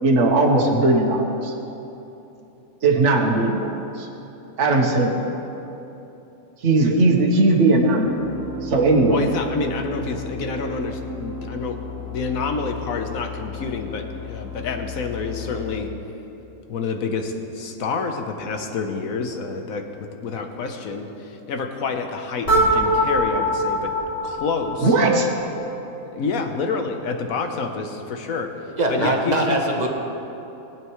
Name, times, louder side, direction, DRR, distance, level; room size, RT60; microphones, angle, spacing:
voice 1, 0.0-1.5 2.8-3.7 4.0-4.1 4.6-5.2 6.6-8.1 8.6-9.2 24.8-25.3, right 2 dB, 55° right, 0 dB, 1.5 m, -18 dB
sound 1, 8.0-15.9, left 2 dB, 20° left, 0.4 m, -34 dB
voice 2, 9.1-11.8 12.1-15.9 16.7-23.9 24.2-24.9 26.1-28.5 28.9-29.6, left 4 dB, 65° left, 5 dB, 1.4 m, -28 dB
sound 2, 22.5-25.4, equal, 45° left, 2.8 m, -22 dB
voice 3, 28.8-29.9, right 1 dB, 30° right, 1 dB, 1.1 m, -21 dB
21.0 x 8.8 x 3.1 m, 3.0 s
omnidirectional pair, 1.6 m